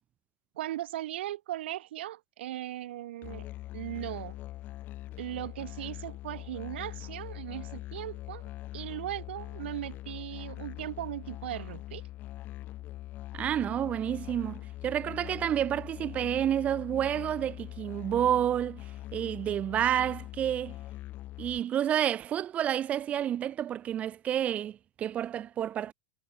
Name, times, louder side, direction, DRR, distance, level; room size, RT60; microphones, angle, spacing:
voice 1, 0.6-3.5 3.7-4.4 5.2-12.0, right 14 dB, 70° right, 1.4 m, -38 dB
Musical instrument, 3.2-21.6, left 15 dB, 30° left, 6.6 m, -42 dB
voice 2, 13.3-20.8 21.4-25.9, right 10 dB, 20° right, 2.1 m, -30 dB
supercardioid pair, 160°, 6 cm